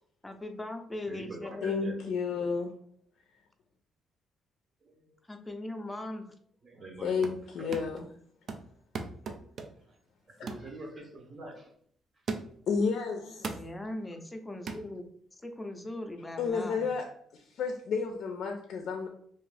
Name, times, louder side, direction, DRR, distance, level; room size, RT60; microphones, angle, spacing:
voice 1, 0.2-2.1 5.3-6.3 13.5-15.0 15.3-16.9, left 1 dB, 15° left, 4 dB, 0.5 m, -40 dB
voice 2, 1.0-2.0 2.3-2.6 4.8-5.1 5.4-5.6 6.6-7.9 10.4-11.7, right 2 dB, 40° right, 1 dB, 0.8 m, -46 dB
voice 3, 1.6-2.7 6.9-8.1 12.7-13.6 16.4-17.0 17.5-19.1, left 5 dB, 70° left, 3 dB, 0.4 m, -31 dB
sound 1, 7.0-7.5 7.7-8.1 8.5-9.9 10.5-10.7 11.2-11.4 12.3-12.7 13.4-13.8 14.7-14.9, right 4 dB, 60° right, 0.3 m, -39 dB
2.6 x 2.4 x 3.2 m, 0.63 s
cardioid pair, 90°, 0 cm